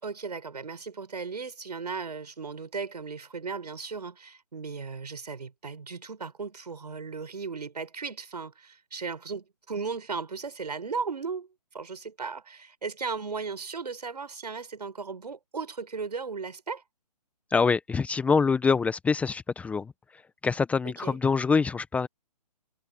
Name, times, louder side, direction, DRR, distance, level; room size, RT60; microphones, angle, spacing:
voice 1, 0.0-11.5 11.7-16.8 20.8-21.2, right 5 dB, 75° right, 6.7 m, -36 dB
voice 2, 17.5-19.9 20.4-22.1, left 5 dB, 5° left, 1.1 m, -25 dB
figure-of-eight pair, 140°, 21 cm